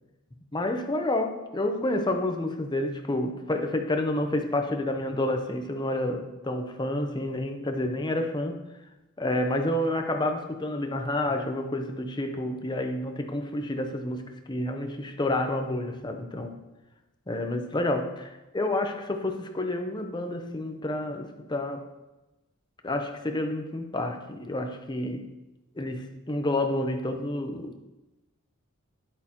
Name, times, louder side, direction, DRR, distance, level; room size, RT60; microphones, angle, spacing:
voice 1, 0.5-8.6 9.2-16.6 17.3-18.3 18.5-21.9 22.8-25.3 25.7-27.9, left 1 dB, 20° left, 5 dB, 0.7 m, -29 dB
11.0 x 8.3 x 3.0 m, 1.0 s
head